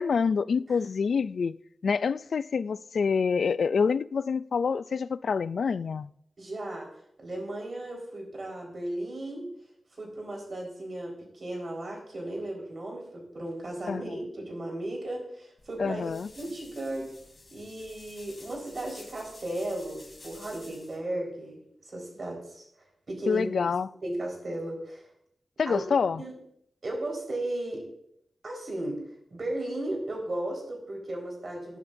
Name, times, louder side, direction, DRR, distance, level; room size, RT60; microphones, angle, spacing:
voice 1, 0.0-1.6 1.8-6.1 13.9-14.1 15.8-16.3 23.3-23.9 25.6-26.2, left 5 dB, 75° left, 0.3 m, -27 dB
voice 2, 6.4-6.9 7.2-9.5 10.0-16.0 16.4-17.1 17.5-21.6 21.8-23.5 24.0-25.1 25.7-25.8 26.2-26.3 26.8-27.9 28.4-29.0 29.3-31.8, right 1 dB, 50° right, 4.5 m, -35 dB
sound 1, 15.6-21.0, left 2 dB, 35° left, 3.0 m, -51 dB
19.5 x 9.9 x 2.6 m
wide cardioid pair, 110°, 0 cm